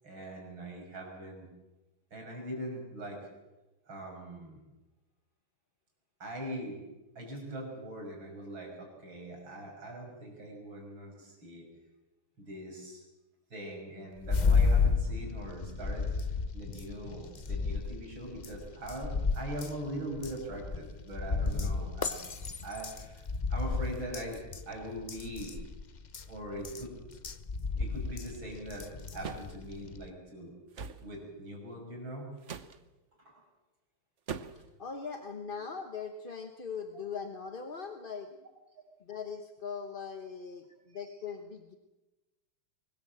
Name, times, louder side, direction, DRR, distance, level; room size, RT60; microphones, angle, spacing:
voice 1, 0.0-1.5 2.1-3.2 3.9-4.6 6.2-6.8 7.1-11.7 12.4-13.0 13.5-22.2 22.6-23.2 23.5-25.5 26.3-27.0 27.8-30.5 31.0-32.3 33.2-33.4 38.8-38.9, right 1 dB, 65° right, 0 dB, 6.8 m, -42 dB
sound 1, 14.2-30.1, left 4 dB, 55° left, 0.5 m, -32 dB
sound 2, 29.2-29.5 30.7-31.0 32.4-32.8 34.3-34.7, right 6 dB, 45° right, 1.0 m, -40 dB
voice 2, 34.5-38.3 39.0-41.7, left 6 dB, 30° left, 6 dB, 1.0 m, -40 dB
24.0 x 20.5 x 7.6 m, 1.1 s
omnidirectional pair, 2.4 m